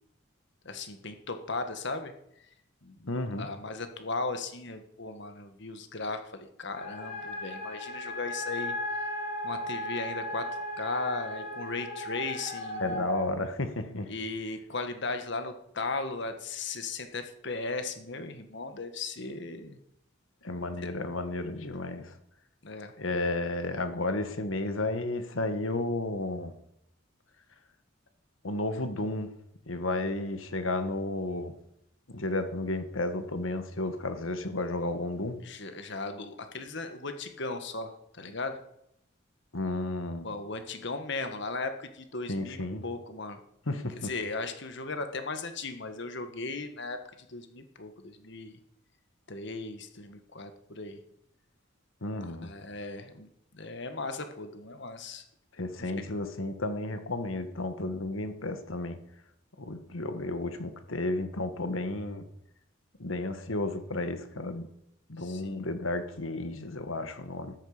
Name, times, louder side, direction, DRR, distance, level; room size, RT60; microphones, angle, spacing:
voice 1, 0.6-2.5 2.8-3.1 3.4-9.0 9.4-13.1 14.1-19.8 22.6-22.9 35.4-38.6 40.2-43.4 44.0-48.6 49.3-51.0 52.4-55.2 55.8-56.1 65.2-65.6, left 3 dB, 60° left, 7 dB, 1.6 m, -37 dB
voice 2, 3.1-3.5 12.8-14.1 20.4-22.1 23.0-26.5 28.4-29.3 29.7-31.5 32.1-35.4 39.5-40.3 42.3-42.8 43.7-44.1 52.0-52.5 55.6-59.0 59.6-62.3 63.0-64.7 65.1-67.5, left 2 dB, 80° left, 9 dB, 1.6 m, -32 dB
sound 1, 6.7-13.3, left 1 dB, 40° left, 3.3 m, -36 dB
13.0 x 12.5 x 5.1 m, 0.77 s
head